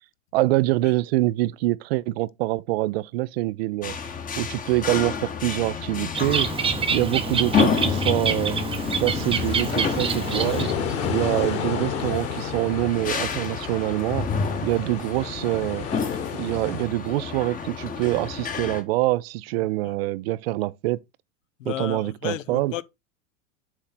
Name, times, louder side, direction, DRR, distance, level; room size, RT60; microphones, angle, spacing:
voice 1, 0.3-4.0 4.4-6.5 6.9-8.6 8.9-10.7 11.1-14.2 14.6-15.9 16.3-21.0 21.7-22.7, right 18 dB, 50° right, 0.5 m, -25 dB
sound 1, 3.8-18.8, left 6 dB, 20° left, 1.0 m, -29 dB
Bird, 6.1-10.9, right 6 dB, 15° right, 0.7 m, -27 dB
sound 2, 8.8-16.9, left 7 dB, 35° left, 1.6 m, -32 dB
voice 2, 21.6-22.8, left 14 dB, 70° left, 0.7 m, -33 dB
7.3 x 3.8 x 4.2 m
hypercardioid pair, 100°, 40 cm